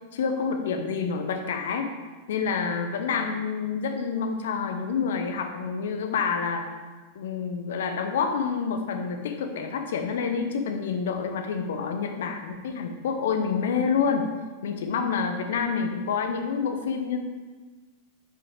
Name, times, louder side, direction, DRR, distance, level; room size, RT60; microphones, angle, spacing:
voice 1, 0.1-1.9 2.3-6.7 7.1-14.4 14.6-17.2, left 6 dB, 60° left, 5 dB, 0.8 m, -28 dB
7.4 x 5.0 x 5.0 m, 1.3 s
figure-of-eight pair, 90°, 0 cm